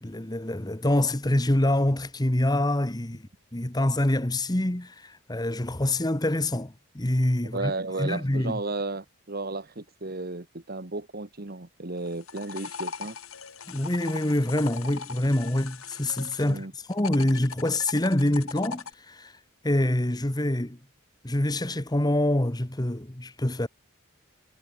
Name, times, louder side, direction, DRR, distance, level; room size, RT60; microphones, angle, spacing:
voice 1, 0.0-3.2 3.5-7.7 8.0-8.6 13.7-19.3 19.6-20.8 21.2-23.7, left 1 dB, 20° left, 1.1 m, -26 dB
voice 2, 7.5-13.2 16.4-16.7, right 2 dB, 45° right, 1.6 m, -34 dB
sound 1, 12.0-16.6 16.9-18.9, left 5 dB, 75° left, 4.6 m, -39 dB
head